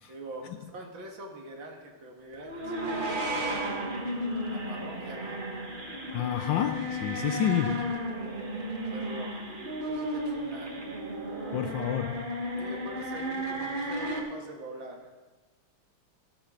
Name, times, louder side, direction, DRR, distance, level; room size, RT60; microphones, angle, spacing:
voice 1, 0.1-3.9 4.5-5.4 7.9-8.0 8.8-9.3 9.9-10.8 12.6-15.1, right 1 dB, 65° right, 2.4 m, -44 dB
sound 1, 2.4-14.2, equal, 25° right, 1.3 m, -33 dB
voice 2, 6.1-8.0 11.5-12.3, left 10 dB, 75° left, 1.1 m, -29 dB
14.5 x 12.5 x 3.7 m
omnidirectional pair, 2.4 m